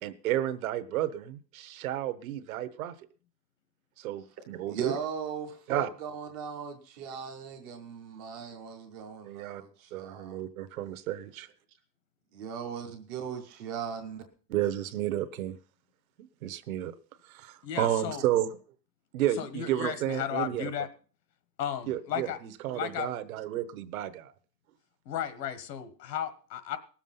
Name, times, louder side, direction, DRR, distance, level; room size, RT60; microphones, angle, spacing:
voice 1, 0.0-2.9 4.0-4.9 5.7-5.9 9.2-9.6 9.9-11.5 14.5-15.6 16.4-16.9 17.2-18.5 19.1-20.7 21.9-24.3, right 12 dB, 55° right, 1.0 m, -32 dB
voice 2, 4.7-10.4 12.3-14.2, right 7 dB, 15° right, 0.5 m, -38 dB
voice 3, 17.6-18.2 19.4-20.9 21.6-22.4 22.7-23.1 25.0-26.8, left 9 dB, 75° left, 1.6 m, -34 dB
18.5 x 7.4 x 5.5 m
supercardioid pair, 175°, 49 cm